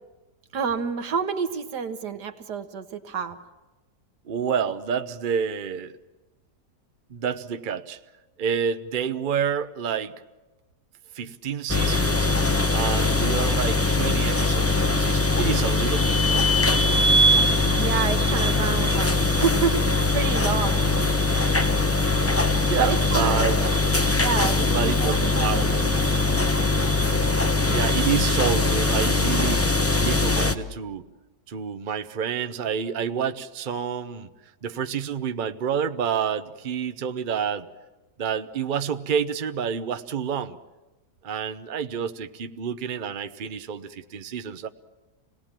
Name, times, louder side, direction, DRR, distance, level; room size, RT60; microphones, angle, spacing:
voice 1, 0.5-3.4 17.3-21.3 22.8-23.7 24.1-24.7 25.0-26.5, right 6 dB, 80° right, 8 dB, 1.8 m, -29 dB
voice 2, 4.2-6.0 7.1-8.0 8.4-10.2 11.1-12.3 12.7-17.0 22.4-23.6 24.7-25.9 27.7-31.1 31.5-34.3 34.6-37.7 38.2-40.6 41.2-44.7, right 7 dB, 40° right, 8 dB, 0.8 m, -29 dB
sound 1, 11.7-30.5, left 2 dB, 15° left, 0.5 m, -21 dB
27.0 x 19.0 x 7.5 m, 1.1 s
omnidirectional pair, 1.7 m